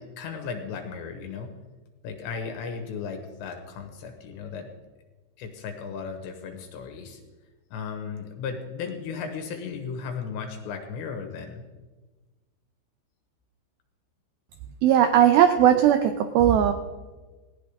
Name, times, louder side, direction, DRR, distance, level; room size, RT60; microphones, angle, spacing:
voice 1, 0.0-1.5 2.0-4.7 5.4-7.2 7.7-11.6, left 6 dB, 75° left, 5 dB, 3.4 m, -35 dB
voice 2, 14.8-16.7, right 10 dB, 90° right, 7 dB, 2.1 m, -18 dB
19.0 x 17.5 x 3.6 m, 1.3 s
omnidirectional pair, 5.3 m